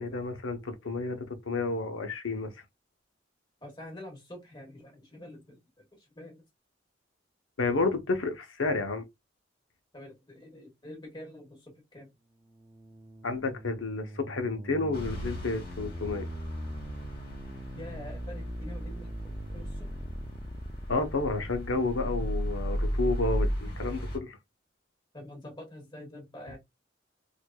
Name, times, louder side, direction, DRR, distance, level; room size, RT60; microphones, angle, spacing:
voice 1, 0.0-2.5 7.6-9.1 13.2-16.3 20.9-23.5 23.8-24.4, left 3 dB, 85° left, 0.8 m, -30 dB
voice 2, 3.6-5.6 6.1-6.4 9.9-12.1 17.7-20.1 25.1-26.6, left 1 dB, 25° left, 1.3 m, -46 dB
sound 1, 12.3-21.1, right 1 dB, 25° right, 0.4 m, -42 dB
sound 2, 14.9-24.2, equal, 50° left, 1.0 m, -35 dB
4.5 x 2.5 x 2.3 m
head